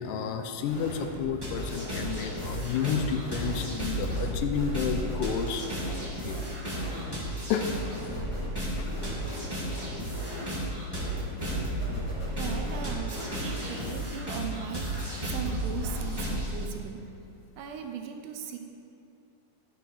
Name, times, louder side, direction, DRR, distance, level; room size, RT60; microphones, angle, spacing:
voice 1, 0.0-5.7 6.0-6.4 7.5-7.7 8.8-8.9 9.4-9.5, left 7 dB, 80° left, 7 dB, 2.1 m, -31 dB
sound 1, 0.6-1.3 1.5-14.2, equal, 10° left, 1.7 m, -41 dB
sound 2, 1.4-16.6, right 1 dB, 15° right, 1.0 m, -33 dB
voice 2, 12.4-17.1 17.6-18.6, right 7 dB, 80° right, 5 dB, 2.1 m, -38 dB
10.5 x 6.2 x 4.6 m, 2.5 s
omnidirectional pair, 3.9 m